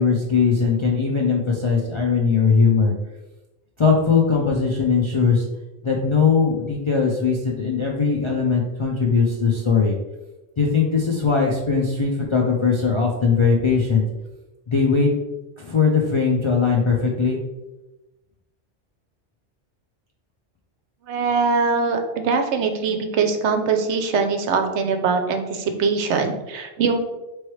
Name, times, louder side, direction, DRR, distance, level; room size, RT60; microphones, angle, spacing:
voice 1, 0.0-2.9 3.8-5.4 5.8-10.0 10.6-14.0 14.7-15.1 15.6-17.4, left 5 dB, 50° left, -2 dB, 0.3 m, -20 dB
voice 2, 21.1-27.0, right 5 dB, 80° right, 6 dB, 0.9 m, -22 dB
4.4 x 3.1 x 3.1 m, 1.0 s
omnidirectional pair, 1.2 m